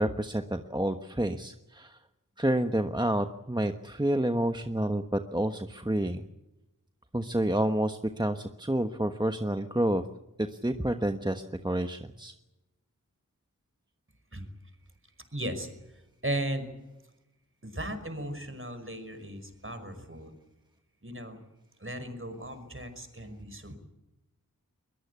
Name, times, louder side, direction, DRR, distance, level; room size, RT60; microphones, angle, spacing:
voice 1, 0.0-2.0 2.4-6.2 7.1-10.1 10.4-12.3, right 1 dB, 15° right, 6 dB, 1.2 m, -29 dB
voice 2, 15.3-16.7 17.6-20.3 21.0-21.4 21.8-23.8, right 1 dB, 40° right, 9 dB, 5.4 m, -36 dB
22.5 x 21.5 x 8.3 m, 0.97 s
wide cardioid pair, 55°, 33 cm